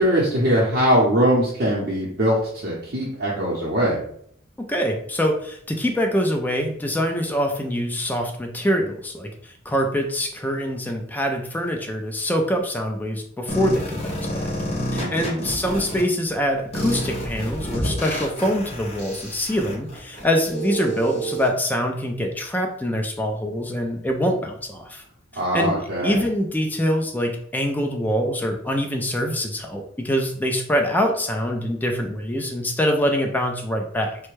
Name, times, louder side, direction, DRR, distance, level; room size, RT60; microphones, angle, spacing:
voice 1, 0.0-4.0 15.0-15.4 25.3-26.2, equal, 50° right, -6 dB, 0.7 m, -21 dB
voice 2, 4.6-14.5 14.9-25.0 25.3-34.2, equal, 10° left, 2 dB, 0.3 m, -24 dB
sound 1, 13.5-16.0 16.7-21.5, right 1 dB, 30° left, 0.9 m, -29 dB
3.3 x 2.1 x 3.1 m, 0.65 s
head